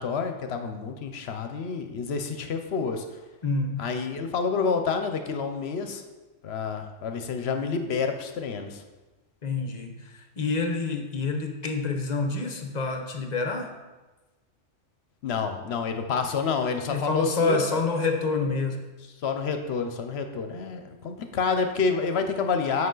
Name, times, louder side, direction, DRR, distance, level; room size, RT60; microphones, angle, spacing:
voice 1, 0.0-3.2 3.8-6.0 6.4-8.8 15.2-17.8 19.2-22.9, left 5 dB, 65° left, 7 dB, 0.9 m, -28 dB
voice 2, 3.4-3.8 9.4-13.7 16.9-18.8, left 3 dB, 40° left, 4 dB, 0.8 m, -27 dB
7.9 x 5.5 x 3.8 m, 1.2 s
omnidirectional pair, 1.2 m